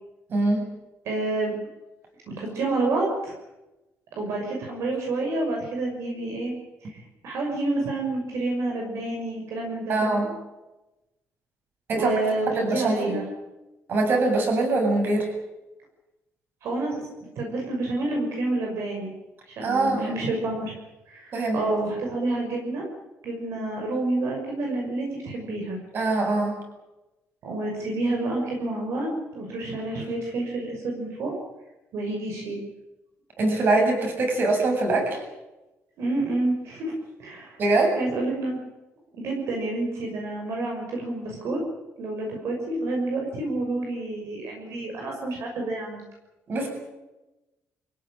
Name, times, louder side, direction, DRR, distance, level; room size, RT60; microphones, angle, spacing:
voice 1, 0.3-0.6 9.9-10.3 11.9-12.1 12.5-13.2 13.9-15.3 19.6-20.2 21.3-21.6 25.9-26.6 33.4-35.2 37.6-38.0 46.5-46.7, right 2 dB, 40° right, 3 dB, 7.9 m, -23 dB
voice 2, 1.0-1.5 2.4-3.3 4.1-6.5 6.8-10.3 11.9-13.2 16.6-17.1 17.3-19.1 19.5-20.8 21.1-22.9 23.2-25.8 27.4-31.3 31.9-32.6 36.0-36.9 37.2-37.6 38.0-38.6 39.2-41.6 42.0-46.0, right 2 dB, 60° right, 0 dB, 6.4 m, -29 dB
26.0 x 17.0 x 9.0 m, 1.0 s
cardioid pair, 175°, 5 cm